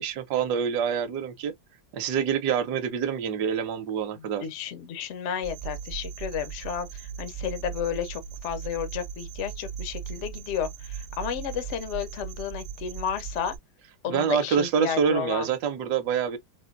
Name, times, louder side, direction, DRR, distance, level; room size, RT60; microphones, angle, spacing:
voice 1, 0.0-1.5 1.9-4.5 14.1-16.4, right 7 dB, 65° right, 1.2 m, -26 dB
voice 2, 4.2-13.5 14.0-15.5, left 8 dB, 80° left, 0.6 m, -32 dB
sound 1, 5.4-13.6, right 7 dB, ahead, 0.5 m, -38 dB
4.3 x 2.1 x 2.4 m
omnidirectional pair, 2.1 m